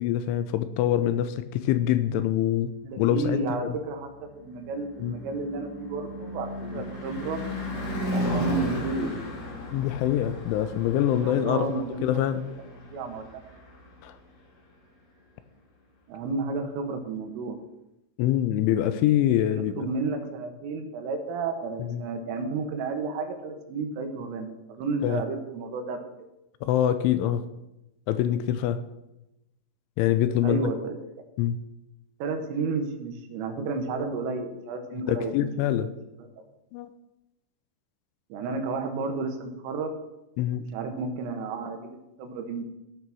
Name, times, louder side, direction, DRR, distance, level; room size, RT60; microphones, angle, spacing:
voice 1, 0.0-3.8 5.0-5.2 6.6-6.8 9.7-12.4 14.0-14.1 18.2-19.9 21.9-22.0 25.0-25.2 26.6-27.4 28.1-28.8 30.0-30.6 31.4-31.6 34.9-35.9 36.7-36.9 40.4-40.6, left 11 dB, 80° left, 12 dB, 2.9 m, -25 dB
voice 2, 2.8-7.4 8.1-9.1 11.2-12.2 12.5-12.6 12.9-13.3 16.1-17.6 19.8-26.1 30.4-31.0 32.2-35.5 35.8-35.9 36.2-36.3 38.3-39.9 40.7-42.6, right 4 dB, 85° right, 5 dB, 4.0 m, -32 dB
Car passing by / Truck / Engine, 4.1-14.4, equal, 55° left, 4.7 m, -35 dB
16.0 x 6.0 x 6.1 m, 0.92 s
omnidirectional pair, 5.7 m